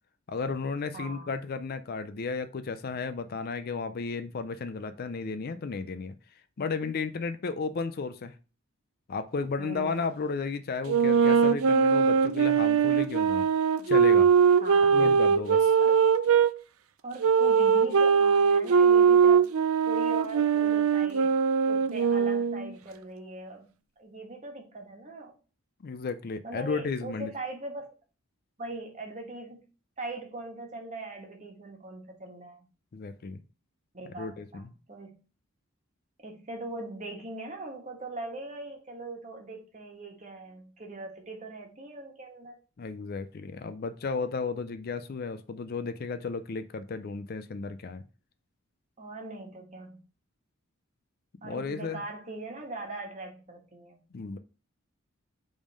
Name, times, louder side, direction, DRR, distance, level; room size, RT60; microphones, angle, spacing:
voice 1, 0.3-6.1 6.6-8.3 9.1-13.5 13.9-14.3 14.9-15.7 25.8-27.3 32.9-33.4 34.2-34.7 42.8-48.0 51.4-52.0 54.1-54.4, left 4 dB, 45° left, 10 dB, 0.4 m, -33 dB
voice 2, 0.9-1.3 9.6-10.1 14.6-15.1 15.8-16.0 17.0-19.5 19.8-21.4 21.7-23.7 24.0-25.3 26.4-27.9 28.6-29.6 30.0-32.7 33.9-34.6 34.9-35.1 36.2-42.6 49.0-50.0 51.4-54.0, right 2 dB, 35° right, 1 dB, 1.4 m, -40 dB
sound 1, 10.9-16.5 17.2-22.7, right 6 dB, 75° right, 0.4 m, -21 dB
5.2 x 3.6 x 5.2 m, 0.35 s
head